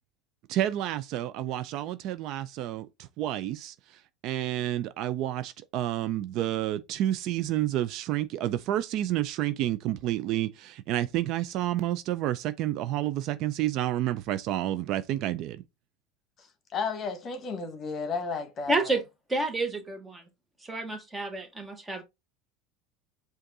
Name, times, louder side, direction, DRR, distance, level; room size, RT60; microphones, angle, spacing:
voice 1, 0.5-2.9 3.2-3.7 4.2-15.6, right 13 dB, 55° right, 0.4 m, -29 dB
voice 2, 16.7-19.0, left 4 dB, 35° left, 1.1 m, -33 dB
voice 3, 18.7-19.0 19.3-20.2 20.6-22.0, right 2 dB, 15° right, 1.2 m, -29 dB
5.2 x 2.5 x 3.9 m
supercardioid pair, 125°, 0 cm